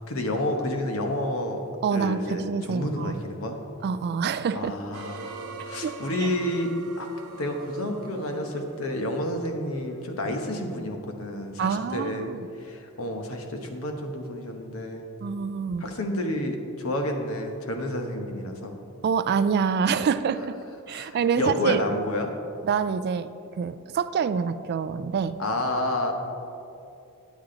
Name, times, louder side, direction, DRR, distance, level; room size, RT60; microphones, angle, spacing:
voice 1, 0.0-1.6 1.9-3.6 4.5-7.1 7.4-15.0 15.8-18.8 20.9-22.3 25.4-26.1, left 1 dB, 70° left, 4 dB, 1.0 m, -30 dB
voice 2, 1.8-3.2 3.8-4.7 5.8-5.9 11.6-12.5 15.2-15.8 19.0-20.5 20.9-21.8 22.6-25.4, right 6 dB, 50° right, 13 dB, 0.3 m, -26 dB
sound 1, 4.9-9.9, right 4 dB, 90° right, 0.6 m, -42 dB
9.3 x 8.4 x 3.9 m, 2.6 s
head